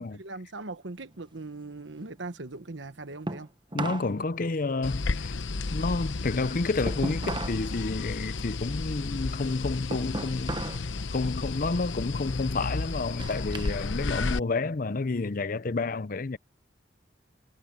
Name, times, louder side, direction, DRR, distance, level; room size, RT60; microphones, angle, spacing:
voice 1, 0.1-3.5, right 2 dB, 75° right, 1.3 m, -40 dB
sound 1, 1.0-4.1 4.5-7.7 8.0-10.9 11.2-11.6 12.2-13.8 14.2-15.3, right 2 dB, 25° right, 0.9 m, -38 dB
voice 2, 3.7-5.3 5.7-10.6 11.1-16.4, left 3 dB, 45° left, 0.6 m, -30 dB
sound 2, 4.8-14.4, left 3 dB, 85° left, 0.9 m, -33 dB
head